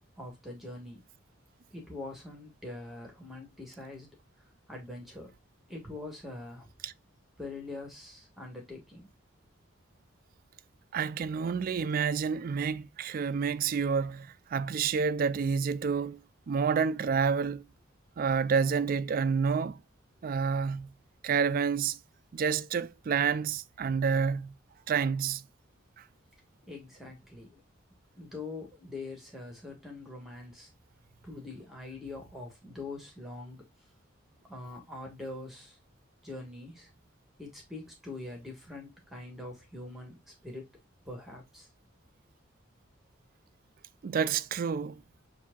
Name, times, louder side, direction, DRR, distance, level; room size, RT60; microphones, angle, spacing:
voice 1, 0.2-1.0 1.7-4.1 4.7-5.3 5.7-6.7 7.4-9.1 26.7-27.6 28.2-30.7 31.2-33.6 34.5-35.8 36.2-36.9 37.4-40.2 40.4-40.7 41.0-41.7, left 2 dB, ahead, 1.4 m, -43 dB
voice 2, 10.9-16.2 16.5-17.6 18.2-19.8 20.2-20.9 21.2-22.0 22.3-24.5 24.9-25.4 44.0-45.0, right 6 dB, 45° right, 0.3 m, -29 dB
7.2 x 2.7 x 2.3 m
head